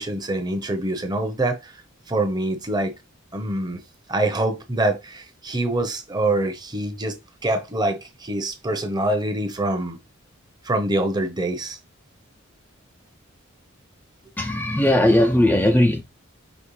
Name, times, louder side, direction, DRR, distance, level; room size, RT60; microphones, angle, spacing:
voice 1, 0.0-1.7 2.1-2.9 3.3-3.8 4.1-7.1 7.4-10.0 10.6-11.8, right 1 dB, 20° right, 0.8 m, -25 dB
voice 2, 14.4-16.0, left 1 dB, 10° left, 0.4 m, -18 dB
5.3 x 3.0 x 3.1 m
head